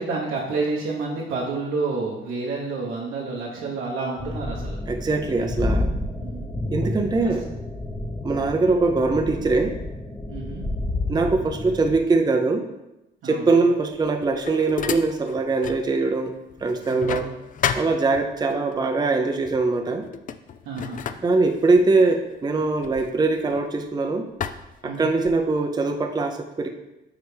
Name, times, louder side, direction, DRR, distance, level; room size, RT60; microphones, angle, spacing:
voice 1, 0.0-4.8 6.2-6.5 7.2-7.4 10.3-10.6 13.2-13.6 16.9-17.3 20.6-21.0 24.8-25.1, right 3 dB, 80° right, -4 dB, 1.1 m, -29 dB
sound 1, 4.2-12.0, left 1 dB, 15° left, 0.8 m, -30 dB
voice 2, 4.9-5.9 6.7-7.5 8.2-9.8 11.1-12.6 13.2-16.3 16.6-17.3 17.7-20.0 21.2-24.2 24.8-26.7, right 3 dB, 20° right, 4 dB, 0.5 m, -22 dB
sound 2, 13.9-15.9 16.2-18.6 19.4-19.7 20.0-23.9 24.4-25.5, left 7 dB, 40° left, 0.4 m, -32 dB
9.3 x 3.3 x 3.3 m, 0.96 s
cardioid pair, 90°, 20 cm